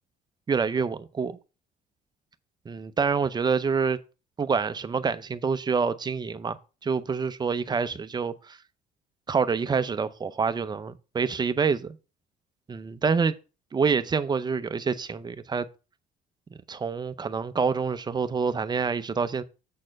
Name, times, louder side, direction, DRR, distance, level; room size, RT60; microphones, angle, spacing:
voice 1, 0.5-1.4 2.7-4.0 4.4-8.6 9.3-12.0 12.7-13.4 13.7-15.7 16.7-19.4, right 5 dB, 25° right, 0.6 m, -27 dB
7.6 x 4.2 x 6.6 m
cardioid pair, 110°, 17 cm